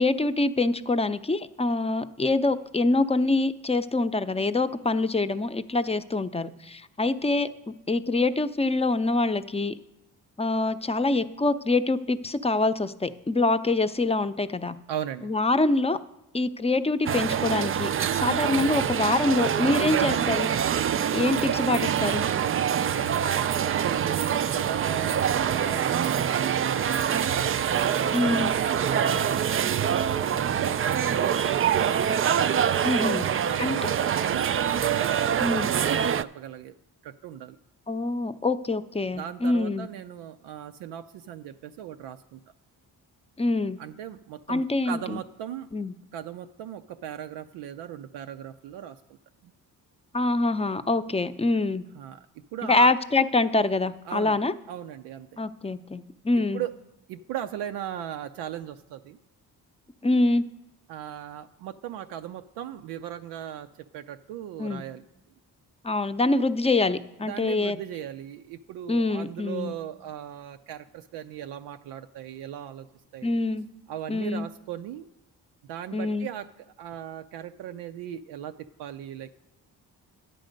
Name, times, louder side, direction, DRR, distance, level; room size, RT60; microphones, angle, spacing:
voice 1, 0.0-9.7 10.4-14.8 15.2-16.0 16.3-17.9 18.2-20.5 21.1-22.2 28.1-28.5 32.8-33.2 33.6-33.8 35.4-35.7 37.9-39.9 43.4-43.8 44.5-45.2 45.7-45.9 50.1-51.8 52.6-54.5 55.4-56.6 60.0-60.4 64.6-64.8 65.8-67.8 68.9-69.7 73.2-73.7 74.1-74.5 75.9-76.3, left 2 dB, 15° left, 11 dB, 0.6 m, -25 dB
voice 2, 14.9-15.3 22.4-22.9 23.7-27.3 28.8-31.8 32.8-36.7 37.0-37.6 39.1-42.4 43.8-45.7 46.1-49.2 49.4-49.5 51.9-52.3 52.5-52.9 54.0-54.4 54.7-55.3 56.5-56.7 57.1-59.2 60.9-63.7 63.9-65.0 67.2-72.9 73.1-73.3 73.9-75.1 75.7-76.5 76.8-79.3, right 10 dB, 90° right, 8 dB, 0.5 m, -38 dB
sound 1, 17.1-36.2, right 8 dB, 35° right, 0.4 m, -25 dB
10.5 x 7.6 x 5.2 m, 0.98 s
supercardioid pair, 60°, 40 cm